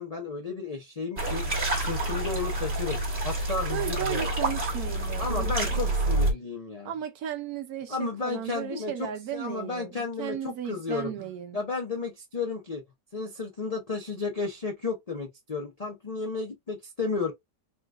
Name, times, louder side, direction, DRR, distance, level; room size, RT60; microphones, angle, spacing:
voice 1, 0.0-3.0 3.2-4.3 5.2-6.9 7.9-12.8 13.1-17.3, left 4 dB, 85° left, 0.3 m, -33 dB
sound 1, 1.2-6.3, right 1 dB, 30° right, 1.4 m, -28 dB
voice 2, 3.7-5.8 6.8-8.0 8.2-11.6, right 10 dB, 70° right, 1.0 m, -35 dB
3.8 x 2.4 x 2.4 m
omnidirectional pair, 1.9 m